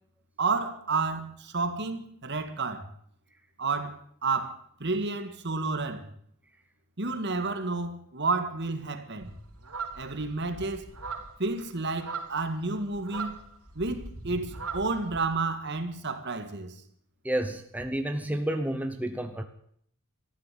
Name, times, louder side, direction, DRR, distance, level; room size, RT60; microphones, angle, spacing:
voice 1, 0.4-2.9 3.6-6.1 7.0-9.3 10.0-10.9 11.4-13.4 13.8-16.8, right 3 dB, 50° right, 1.8 m, -31 dB
sound 1, 9.2-15.3, right 4 dB, 90° right, 3.5 m, -40 dB
voice 2, 17.2-19.4, right 1 dB, 5° right, 0.9 m, -30 dB
14.0 x 11.5 x 9.2 m
head